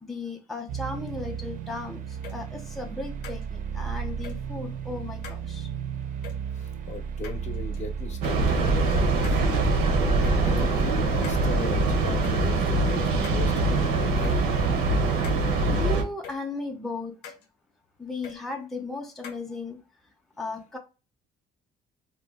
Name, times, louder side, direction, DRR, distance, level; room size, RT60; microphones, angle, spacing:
voice 1, 0.0-5.7 15.7-17.3 18.0-19.8 20.4-20.8, left 3 dB, ahead, 2 dB, 0.4 m, -36 dB
sound 1, 0.7-12.2, right 7 dB, 55° right, 0.5 m, -33 dB
sound 2, 2.2-2.4 3.2-3.5 4.2-4.4 5.2-5.4 6.2-6.4 7.2-7.8 8.2-8.4 9.2-9.5 10.2-10.4 11.2-11.4 12.2-12.4 13.2-13.5 14.2-14.4 15.2-15.4 16.2-16.4 17.2-17.5 18.2-18.4 19.2-19.4, left 7 dB, 85° left, 0.7 m, -42 dB
voice 2, 6.6-9.6 10.4-14.3, left 4 dB, 45° left, 6 dB, 0.6 m, -38 dB
Train, 8.2-16.0, right 2 dB, 85° right, 0.7 m, -23 dB
2.7 x 2.2 x 3.3 m, 0.31 s
cardioid pair, 110°, 17 cm